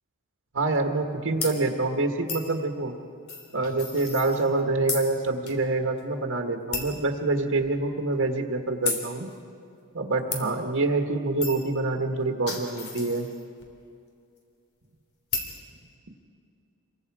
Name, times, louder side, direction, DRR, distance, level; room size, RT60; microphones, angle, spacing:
voice 1, 0.5-2.9 3.5-9.3 9.9-13.3, right 2 dB, 65° right, 3 dB, 1.6 m, -26 dB
sound 1, 1.4-1.6 2.3-2.5 3.3-4.6 4.9-5.1 5.5-5.6 6.0-6.1 6.7-7.0 7.6-7.7 8.8-9.1 10.3-10.4 11.4-11.7 12.2-13.6 15.3-15.6, left 4 dB, 75° left, 3.3 m, -33 dB
28.0 x 23.0 x 4.9 m, 2.5 s
head